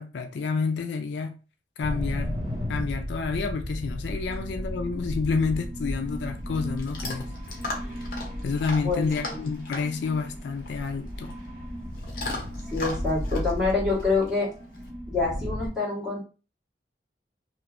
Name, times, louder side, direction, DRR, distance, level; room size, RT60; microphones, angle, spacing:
voice 1, 0.0-1.4 1.8-2.4 2.7-7.3 8.4-11.3, left 4 dB, 75° left, 0.4 m, -29 dB
sound 1, 1.8-15.7, equal, 50° right, 1.3 m, -34 dB
Chewing mastication / Dog, 5.8-14.9, left 2 dB, 55° left, 0.7 m, -39 dB
voice 2, 8.8-9.4 12.7-14.5 15.1-16.2, left 3 dB, 5° right, 1.6 m, -26 dB
2.9 x 2.5 x 2.5 m
head